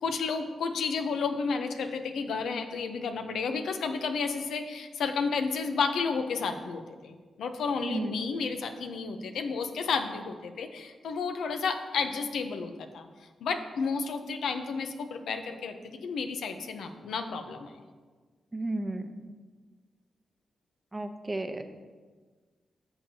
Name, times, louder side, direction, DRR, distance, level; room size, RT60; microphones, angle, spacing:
voice 1, 0.0-13.1 13.4-17.7, left 5 dB, 85° left, 6 dB, 0.7 m, -32 dB
voice 2, 7.8-8.1 18.5-19.0 20.9-21.6, right 2 dB, 25° right, 8 dB, 0.7 m, -33 dB
12.5 x 7.0 x 2.8 m, 1.4 s
cardioid pair, 65°, 0 cm